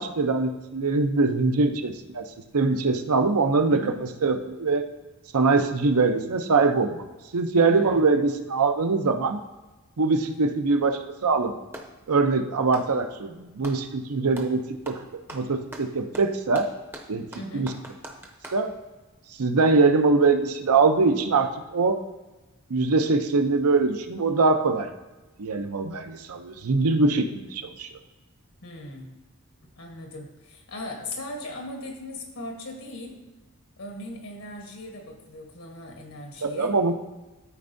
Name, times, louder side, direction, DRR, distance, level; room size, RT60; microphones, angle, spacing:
voice 1, 0.0-2.3 2.5-3.8 4.2-4.8 5.3-7.0 7.3-9.4 10.0-11.5 12.1-15.0 15.3-16.7 17.1-17.2 17.5-17.7 18.5-18.7 19.4-22.0 22.7-24.9 25.4-27.9 36.4-36.9, right 3 dB, 85° right, 7 dB, 0.6 m, -23 dB
voice 2, 7.7-8.1 17.3-17.7 28.6-29.1 29.8-33.2 33.8-36.8, left 1 dB, 75° left, 2 dB, 1.2 m, -38 dB
Clapping, 11.2-12.0 12.6-13.9 14.3-14.6 14.8-18.7, right 1 dB, 10° right, 0.6 m, -42 dB
13.0 x 4.4 x 2.6 m, 1.1 s
head